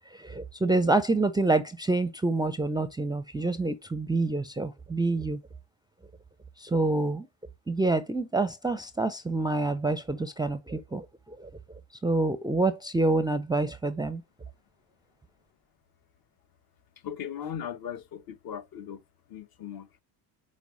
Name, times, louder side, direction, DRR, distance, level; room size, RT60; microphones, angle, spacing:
voice 1, 0.1-5.4 6.6-7.3 7.7-11.5 12.0-14.2, right 2 dB, 10° right, 0.5 m, -27 dB
voice 2, 17.0-19.0 19.3-20.0, left 8 dB, 50° left, 1.2 m, -38 dB
5.3 x 5.2 x 6.1 m
supercardioid pair, 100°, 45 cm